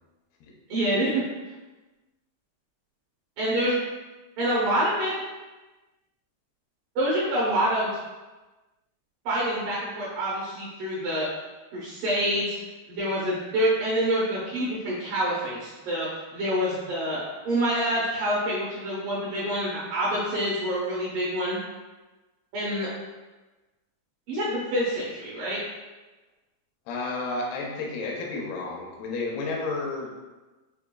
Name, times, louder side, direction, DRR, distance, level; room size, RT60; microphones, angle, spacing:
voice 1, 0.7-1.2 3.4-3.7 4.4-5.1 7.0-7.9 9.3-11.3 11.7-12.5 12.9-16.1 16.3-21.6 22.5-22.9 24.3-25.6, right 1 dB, 70° right, -7 dB, 2.2 m, -26 dB
voice 2, 26.9-30.1, left 3 dB, 85° left, 0 dB, 2.5 m, -31 dB
6.1 x 2.5 x 2.2 m, 1.2 s
omnidirectional pair, 4.5 m